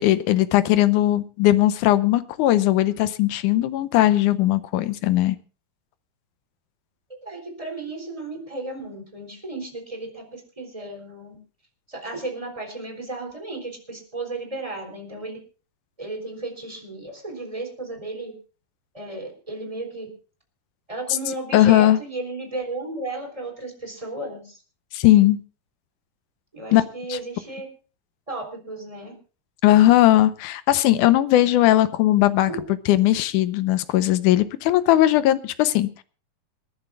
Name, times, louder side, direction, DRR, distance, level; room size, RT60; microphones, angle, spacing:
voice 1, 0.0-5.4 21.5-22.0 24.9-25.4 26.7-26.8 27.1-27.2 29.6-32.5 32.9-36.0, left 14 dB, 75° left, 13 dB, 2.1 m, -18 dB
voice 2, 7.2-11.3 11.9-15.4 16.0-18.3 18.9-20.1 20.9-24.6 26.5-27.7 28.3-29.2 32.5-32.6, right 2 dB, 10° right, 3 dB, 3.3 m, -34 dB
27.5 x 11.0 x 2.4 m, 0.35 s
omnidirectional pair, 4.0 m